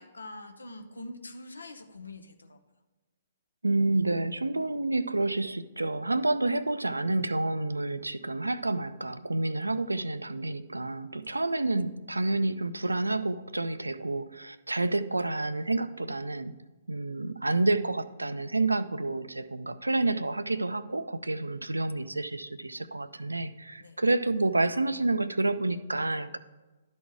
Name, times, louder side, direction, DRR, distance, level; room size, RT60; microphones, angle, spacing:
voice 1, 0.0-2.6 11.2-11.4 23.8-24.0, left 2 dB, 80° left, 5 dB, 0.8 m, -44 dB
voice 2, 3.6-16.6 16.9-26.4, right 2 dB, 85° right, 13 dB, 0.4 m, -29 dB
11.5 x 4.2 x 4.7 m, 1.2 s
figure-of-eight pair, 125°, 0 cm